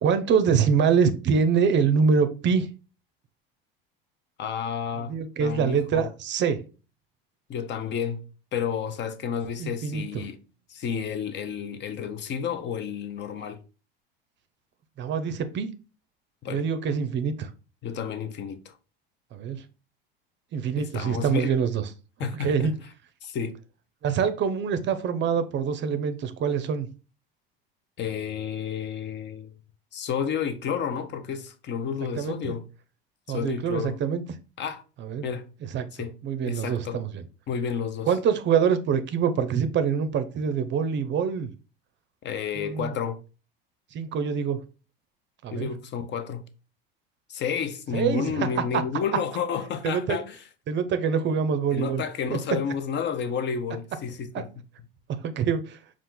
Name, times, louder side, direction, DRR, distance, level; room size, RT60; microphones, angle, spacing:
voice 1, 0.0-2.7 5.1-6.6 9.6-10.0 15.0-15.7 16.5-17.5 19.3-19.6 20.5-21.8 22.4-22.7 24.0-26.9 32.2-32.5 33.3-34.2 35.0-35.3 35.7-35.9 36.2-37.2 38.1-41.5 42.6-42.9 43.9-44.6 45.4-45.7 47.9-48.5 48.7-48.8 49.8-50.2 50.7-52.0 52.3-52.4 54.3-54.4 55.2-55.8, right 6 dB, 40° right, 0.6 m, -25 dB
voice 2, 4.4-5.1 5.4-6.1 7.5-8.2 8.5-10.4 10.7-13.6 16.4-16.6 17.8-18.8 20.8-21.5 22.2-22.7 23.2-23.6 28.0-29.5 29.9-32.6 33.3-34.0 34.6-34.8 35.2-35.5 35.9-36.1 36.5-37.0 37.5-38.1 42.2-43.2 45.5-46.4 47.3-50.4 51.7-54.5, left 7 dB, 40° left, 0.6 m, -31 dB
4.3 x 2.4 x 3.7 m
hypercardioid pair, 85°, 29 cm